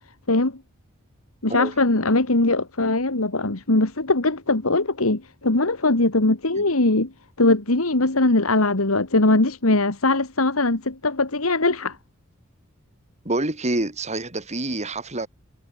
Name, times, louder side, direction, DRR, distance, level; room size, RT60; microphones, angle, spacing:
voice 1, 0.3-0.6 1.4-7.1 7.4-12.0, left 2 dB, 85° left, 2.2 m, -21 dB
voice 2, 13.2-15.3, right 2 dB, 35° right, 3.9 m, -27 dB
head